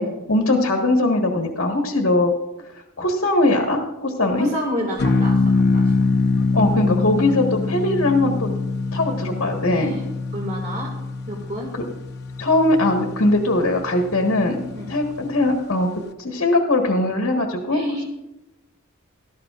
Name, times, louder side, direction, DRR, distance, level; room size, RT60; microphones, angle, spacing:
voice 1, 0.3-2.3 3.0-4.5 6.5-8.5 8.9-9.9 12.4-14.6 14.9-15.9 16.2-17.8, left 2 dB, 65° left, 1 dB, 1.5 m, -20 dB
voice 2, 4.2-6.1 9.7-10.1 10.3-10.9 11.3-11.7 14.7-14.9 17.7-18.0, equal, 35° right, -1 dB, 1.9 m, -30 dB
sound 1, 5.0-15.5, left 3 dB, 50° left, 0.8 m, -24 dB
17.5 x 13.5 x 2.5 m, 0.98 s
head